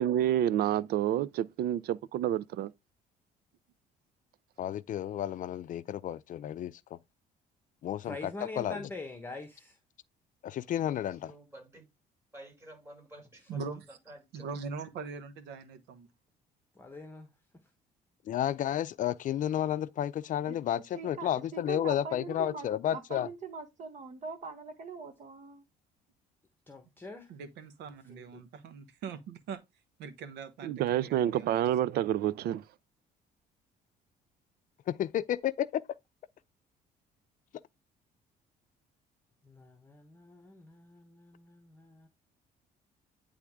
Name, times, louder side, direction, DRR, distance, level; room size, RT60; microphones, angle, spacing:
voice 1, 0.0-2.7 30.6-32.6, right 11 dB, 65° right, 0.5 m, -28 dB
voice 2, 4.6-7.0 7.8-8.3 8.6-8.8 10.4-11.3 18.3-23.3 34.9-35.8, left 11 dB, 50° left, 0.5 m, -32 dB
voice 3, 8.0-9.8 16.7-17.3 26.7-27.3 28.1-28.4 39.4-42.1, left 2 dB, 10° left, 1.1 m, -45 dB
voice 4, 11.2-11.9 12.3-14.5, right 1 dB, 15° right, 5.4 m, -51 dB
voice 5, 13.5-13.8 14.3-16.1 27.3-29.6 30.0-31.7, right 5 dB, 85° right, 1.1 m, -42 dB
voice 6, 20.9-25.6, right 5 dB, 45° right, 1.5 m, -42 dB
9.8 x 3.5 x 3.6 m
cardioid pair, 110°, 17 cm